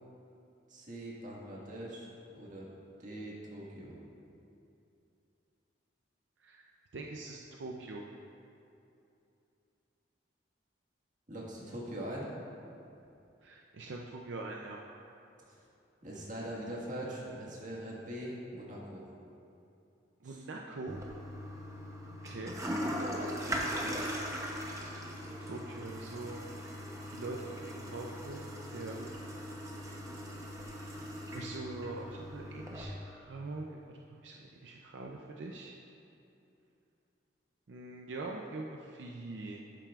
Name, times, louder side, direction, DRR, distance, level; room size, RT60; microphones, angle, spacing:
voice 1, 0.7-2.7 3.0-4.0 11.3-12.3 15.5-15.6 16.0-19.0 20.2-20.4, right 1 dB, 45° right, -5 dB, 1.7 m, -42 dB
voice 2, 6.4-8.0 13.4-14.8 20.2-21.0 22.2-22.5 23.4-24.1 25.4-26.5 27.0-28.5 28.7-29.1 30.7-31.0 31.3-33.8 34.1-35.7 37.7-39.6, right 2 dB, 75° right, -1 dB, 0.5 m, -43 dB
Toilet flush, 20.9-32.8, equal, 15° right, 0.8 m, -40 dB
11.5 x 8.9 x 2.4 m, 2.8 s
head